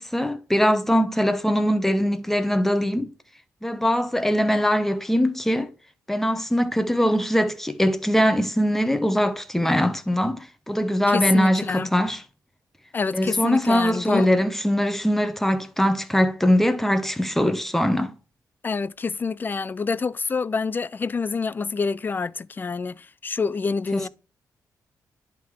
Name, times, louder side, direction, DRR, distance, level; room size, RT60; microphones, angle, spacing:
voice 1, 0.0-3.1 3.6-5.7 6.1-12.2 13.1-18.1 23.9-24.1, equal, 5° left, 0.9 m, -22 dB
voice 2, 11.1-11.9 12.9-14.3 18.6-24.1, left 4 dB, 30° left, 0.3 m, -27 dB
10.5 x 3.7 x 4.6 m
cardioid pair, 95°, 7 cm